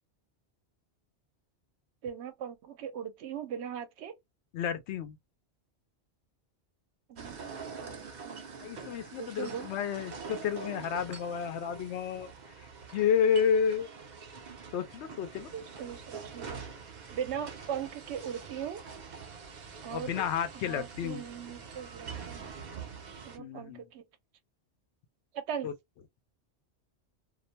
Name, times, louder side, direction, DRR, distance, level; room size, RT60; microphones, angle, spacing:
voice 1, 2.0-4.2 7.1-8.5 9.2-9.7 15.5-16.6 17.1-18.8 19.8-20.1 20.5-22.5 23.2-24.0 25.3-25.7, right 8 dB, 80° right, 0.9 m, -39 dB
voice 2, 4.5-5.2 8.6-12.3 12.9-13.9 14.7-15.5 19.9-21.2 23.4-23.9 25.6-25.7, left 7 dB, 80° left, 0.9 m, -30 dB
sound 1, 7.2-23.4, right 5 dB, 55° right, 0.5 m, -45 dB
2.4 x 2.1 x 2.7 m
omnidirectional pair, 1.1 m